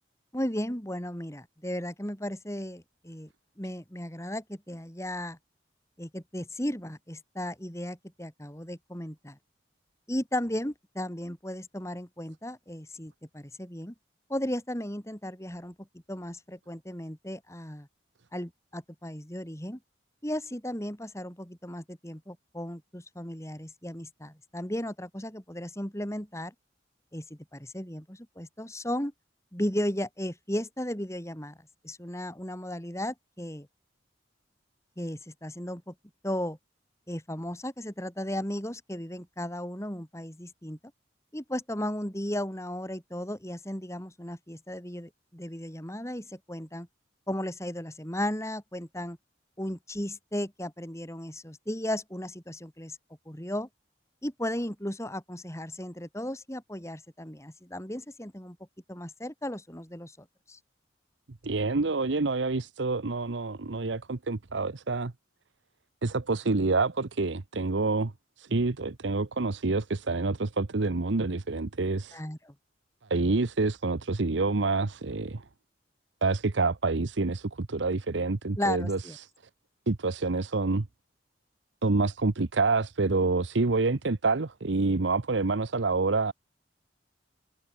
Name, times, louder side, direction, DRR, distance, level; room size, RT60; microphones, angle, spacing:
voice 1, 0.3-3.3 3.6-5.4 6.0-9.4 10.1-13.9 14.3-17.9 18.3-19.8 20.2-26.5 27.1-29.1 29.5-31.6 31.8-33.7 35.0-35.9 36.2-36.6 37.1-40.8 41.3-46.9 47.3-49.2 49.6-53.0 53.3-53.7 54.2-58.6 58.9-60.6 72.1-72.5 78.6-79.2, left 1 dB, 15° left, 4.9 m, -35 dB
voice 2, 61.4-65.1 66.0-68.1 68.4-72.2 73.1-75.4 76.2-79.3 79.9-80.9 81.8-86.3, right 3 dB, 80° right, 0.9 m, -27 dB
head